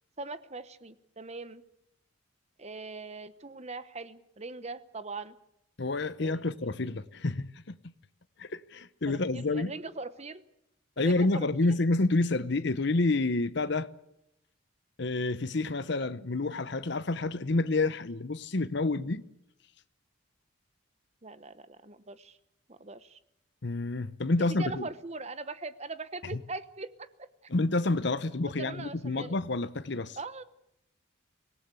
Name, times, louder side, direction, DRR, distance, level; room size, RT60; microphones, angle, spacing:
voice 1, 0.2-1.6 2.6-5.4 6.2-6.5 9.1-10.4 11.0-11.5 21.2-22.4 22.7-23.2 24.4-27.5 28.4-29.4 30.2-30.4, right 3 dB, 30° right, 0.9 m, -41 dB
voice 2, 5.8-7.8 8.4-9.7 11.0-13.9 15.0-19.2 23.6-24.9 26.3-26.4 27.5-30.2, left 2 dB, 55° left, 0.8 m, -29 dB
25.0 x 18.0 x 8.3 m
head